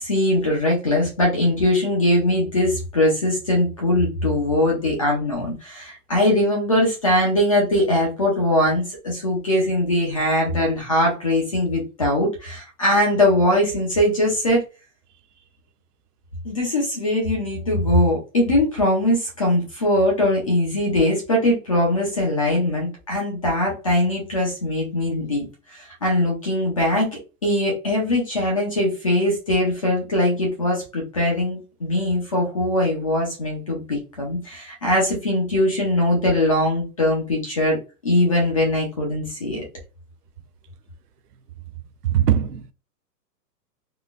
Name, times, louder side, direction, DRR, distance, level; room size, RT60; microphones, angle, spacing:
voice 1, 0.0-14.6 16.4-37.8 38.0-39.6, left 1 dB, 20° left, 0.5 m, -21 dB
voice 2, 42.0-42.7, right 10 dB, 70° right, 0.6 m, -20 dB
3.7 x 2.1 x 2.4 m
hypercardioid pair, 170°, 49 cm